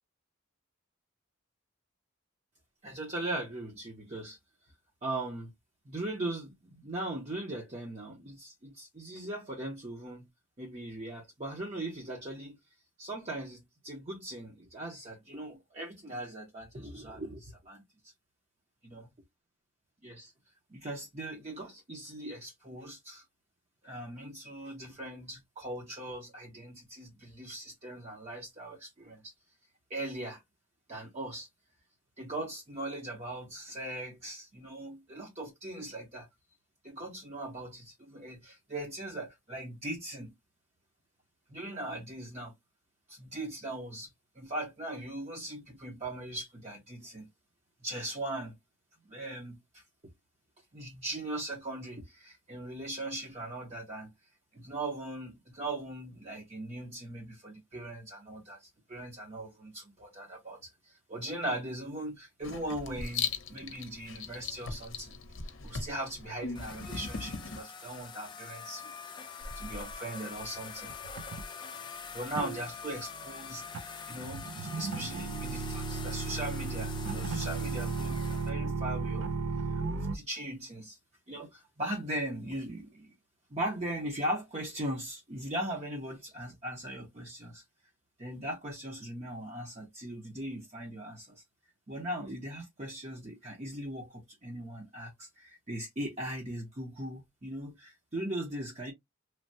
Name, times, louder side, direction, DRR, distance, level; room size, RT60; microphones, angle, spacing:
voice 1, 2.8-4.4 5.0-5.5 5.9-10.3 10.6-12.6 13.0-17.8 18.8-19.1 20.0-20.3 20.7-23.2 23.8-29.3 29.9-30.4 30.9-31.5 32.2-36.3 36.8-40.3 41.5-42.5 43.1-47.3 47.8-48.5 49.0-50.1 50.7-54.1 54.5-65.2 65.6-70.9 72.1-79.3 79.7-81.0 81.3-83.1 83.5-87.6 88.2-91.4 91.9-98.9, right 1 dB, 35° right, 0.7 m, -39 dB
Writing, 62.4-67.6, left 5 dB, 65° left, 0.6 m, -39 dB
sound 1, 66.5-78.5, left 6 dB, 20° left, 0.4 m, -45 dB
sound 2, 69.4-69.9 70.3-70.6 70.9-71.4 72.3-80.2, right 4 dB, 90° right, 0.5 m, -35 dB
3.2 x 2.2 x 2.6 m
head